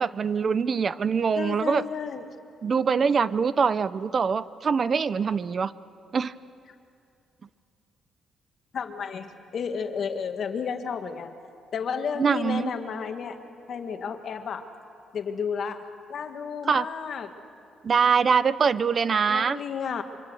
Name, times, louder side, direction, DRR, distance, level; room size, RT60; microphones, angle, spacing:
voice 1, 0.0-1.8 2.6-5.7 6.1-6.3 12.2-12.7 16.7-16.9 17.8-19.6, right 6 dB, 45° right, 16 dB, 0.7 m, -23 dB
voice 2, 1.4-2.4 8.7-11.3 11.7-13.4 13.7-14.7 15.1-17.3 19.3-20.0, left 6 dB, 60° left, 6 dB, 1.8 m, -32 dB
25.5 x 25.0 x 7.9 m, 2.4 s
cardioid pair, 90°, 0 cm